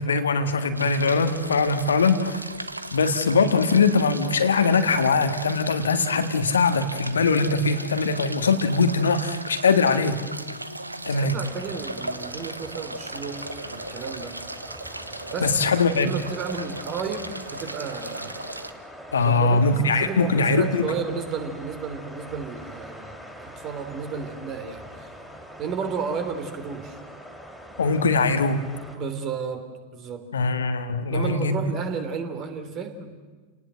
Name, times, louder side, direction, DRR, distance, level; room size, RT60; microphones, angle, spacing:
voice 1, 0.0-2.4 2.9-10.2 11.0-11.3 15.4-16.1 19.1-20.9 27.8-28.6 30.3-31.6, left 4 dB, 70° left, 8 dB, 1.7 m, -21 dB
sound 1, 0.7-18.7, right 1 dB, 85° right, 1.0 m, -36 dB
voice 2, 11.0-14.4 15.3-15.6 15.9-18.4 19.2-24.9 25.6-27.0 28.9-30.3 31.1-33.2, right 5 dB, 35° right, 7 dB, 3.2 m, -33 dB
sound 2, 11.3-29.0, equal, 5° left, 4.2 m, -43 dB
30.0 x 18.5 x 7.7 m, 1.4 s
figure-of-eight pair, 90°, 0 cm